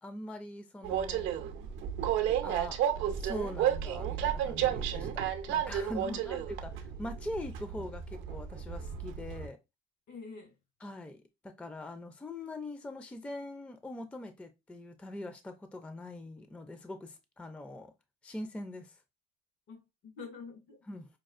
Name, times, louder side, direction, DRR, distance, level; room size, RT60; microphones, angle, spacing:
voice 1, 0.0-1.3 2.4-5.2 5.5-9.6 10.8-17.9 18.2-18.9 20.9-21.1, left 1 dB, 5° left, 0.3 m, -42 dB
Train, 0.8-9.5, right 10 dB, 80° right, 0.5 m, -32 dB
voice 2, 5.9-6.4 10.1-10.5 19.7-20.9, left 5 dB, 75° left, 2.1 m, -47 dB
5.1 x 2.3 x 2.4 m
cardioid pair, 120°, 20 cm